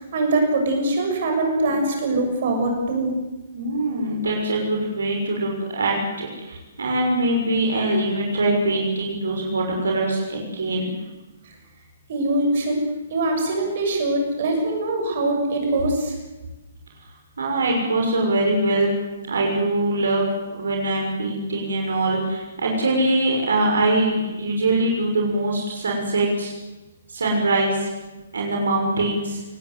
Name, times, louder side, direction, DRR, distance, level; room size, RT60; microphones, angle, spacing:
voice 1, 0.0-3.2 11.4-11.5 12.1-12.8 13.1-16.2, right 2 dB, 45° right, 3 dB, 7.0 m, -23 dB
voice 2, 3.5-10.9 17.4-18.9 19.3-26.5 27.1-27.9 28.3-29.4, right 2 dB, 60° right, 0 dB, 6.4 m, -23 dB
26.5 x 19.5 x 8.2 m, 1.1 s
figure-of-eight pair, 130°, 0 cm